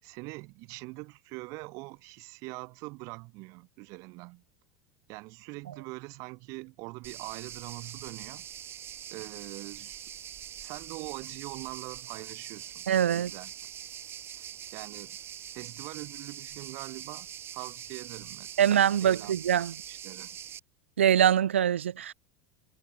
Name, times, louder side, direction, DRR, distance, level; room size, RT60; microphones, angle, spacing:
voice 1, 0.0-4.4 5.1-8.5 9.1-10.0 10.6-12.9 13.1-13.5 14.4-14.5 14.7-15.2 15.5-17.3 17.5-19.3 19.9-20.4, right 26 dB, 55° right, 7.2 m, -43 dB
sound 1, 7.0-20.6, right 10 dB, 40° right, 3.4 m, -43 dB
voice 2, 12.9-13.3 18.6-19.7 21.0-22.1, right 9 dB, 80° right, 0.9 m, -23 dB
hypercardioid pair, 85°, 6 cm